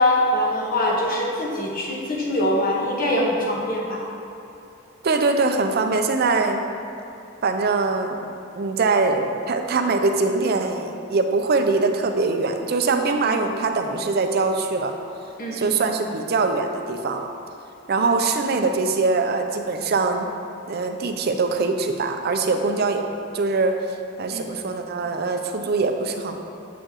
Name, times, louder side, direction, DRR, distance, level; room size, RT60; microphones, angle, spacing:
voice 1, 0.0-4.0 13.2-13.4 15.4-15.8 24.3-24.5, left 1 dB, 45° left, -3 dB, 1.3 m, -23 dB
voice 2, 5.0-6.6 7.4-14.9 15.5-17.3 17.9-20.3 20.7-23.0 23.3-23.8 24.2-26.4, right 3 dB, 50° right, 5 dB, 0.5 m, -22 dB
7.9 x 6.6 x 3.0 m, 2.8 s
head